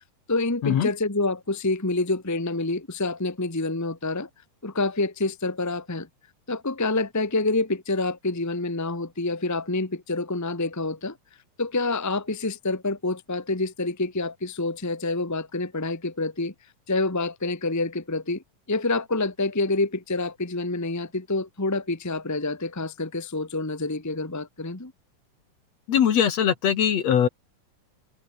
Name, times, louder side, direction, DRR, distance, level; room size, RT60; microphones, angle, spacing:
voice 1, 0.3-4.3 4.6-6.1 6.5-11.2 11.6-16.5 16.9-18.4 18.7-24.9, left 2 dB, 10° left, 1.3 m, -27 dB
voice 2, 25.9-27.3, left 8 dB, 55° left, 2.6 m, -21 dB
omnidirectional pair, 3.8 m